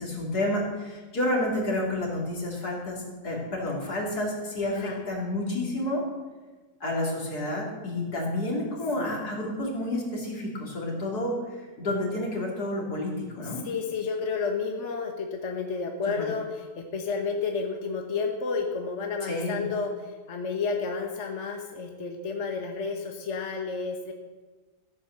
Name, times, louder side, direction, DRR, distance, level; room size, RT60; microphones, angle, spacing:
voice 1, 0.0-6.0 6.8-11.4 11.8-13.6 16.1-16.3 19.2-19.6, left 1 dB, 75° left, -2 dB, 3.6 m, -30 dB
voice 2, 13.6-24.1, left 5 dB, 50° left, 3 dB, 1.5 m, -31 dB
15.0 x 8.7 x 6.7 m, 1.3 s
omnidirectional pair, 1.7 m